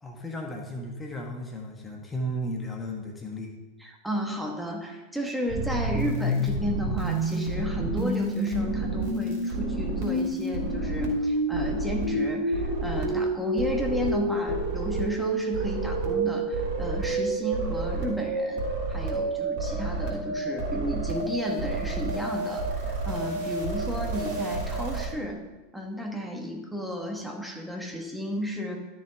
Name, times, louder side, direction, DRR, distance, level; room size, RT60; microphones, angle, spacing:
voice 1, 0.0-3.5, equal, 15° left, 1 dB, 1.5 m, -34 dB
voice 2, 3.8-18.6 18.9-25.4 25.7-28.8, equal, ahead, 0 dB, 1.6 m, -33 dB
sound 1, 5.5-25.0, right 2 dB, 55° right, 3.2 m, -29 dB
13.0 x 6.4 x 3.7 m, 1.2 s
figure-of-eight pair, 85°, 0 cm